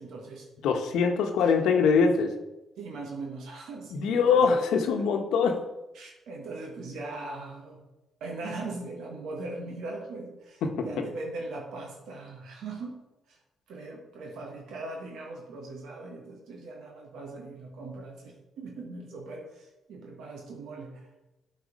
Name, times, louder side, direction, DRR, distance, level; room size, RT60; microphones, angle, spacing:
voice 1, 0.0-0.5 1.4-1.5 2.8-4.6 4.9-5.1 5.9-7.8 8.2-13.0 13.3-13.4 13.7-21.1, right 3 dB, 80° right, 0 dB, 1.4 m, -40 dB
voice 2, 0.6-2.3 3.9-5.6 10.6-11.0, left 5 dB, 85° left, 4 dB, 1.0 m, -23 dB
8.3 x 4.0 x 5.3 m, 0.98 s
cardioid pair, 90°, 0 cm